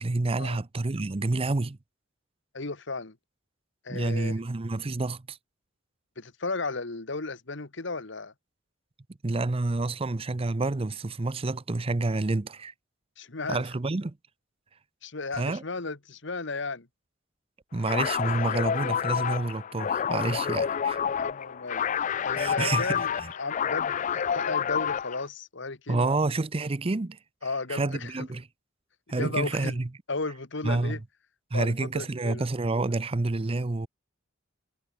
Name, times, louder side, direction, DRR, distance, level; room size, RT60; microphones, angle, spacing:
voice 1, 0.0-1.8 3.9-5.4 9.2-12.7 13.5-14.2 15.4-15.6 17.7-21.0 22.4-23.3 25.9-27.2 27.7-28.5 29.1-29.9 30.6-31.0 31.5-33.9, right 2 dB, 30° right, 0.6 m, -28 dB
voice 2, 2.5-3.2 3.9-4.3 6.2-8.3 13.2-13.6 15.0-16.9 21.2-21.8 22.2-23.1 23.4-26.1 27.4-28.1 29.2-29.8 30.1-31.0 31.5-32.5, left 3 dB, 65° left, 1.7 m, -34 dB
sound 1, 17.8-25.2, left 8 dB, 40° left, 0.4 m, -29 dB
head